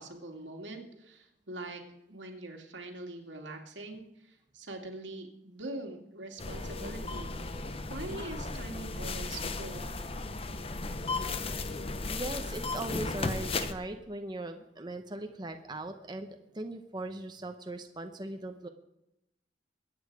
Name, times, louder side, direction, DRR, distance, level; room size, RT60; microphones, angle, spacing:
voice 1, 0.0-1.8 2.1-7.6 7.9-10.1, right 2 dB, 85° right, 2 dB, 2.4 m, -43 dB
sound 1, 6.4-13.7, left 3 dB, 30° left, 0.8 m, -35 dB
voice 2, 12.1-18.7, right 2 dB, 25° right, 5 dB, 0.9 m, -39 dB
22.5 x 8.9 x 4.9 m, 0.85 s
head